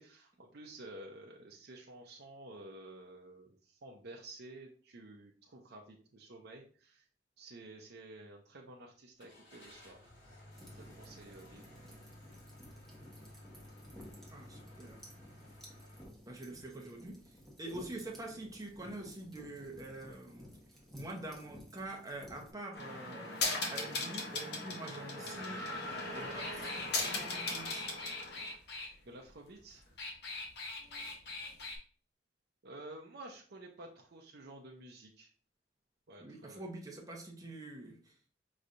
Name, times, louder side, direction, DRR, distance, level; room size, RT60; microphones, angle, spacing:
voice 1, 0.0-7.1 7.4-10.1 10.7-11.8 29.1-29.8 32.6-35.3 36.1-36.6, right 2 dB, 60° right, -1 dB, 0.6 m, -51 dB
Car / Engine starting, 9.2-16.0, left 1 dB, 80° left, 1.5 m, -55 dB
sound 1, 10.5-22.5, equal, ahead, 1.2 m, -55 dB
voice 2, 14.3-15.0 16.3-17.2 17.6-20.5 20.9-23.4 23.7-26.8 27.0-27.9 36.2-38.1, right 2 dB, 20° right, 0 dB, 0.9 m, -46 dB
sound 2, 22.7-28.9 29.8-31.8, left 2 dB, 65° left, 0.9 m, -38 dB
5.4 x 3.1 x 2.6 m, 0.43 s
head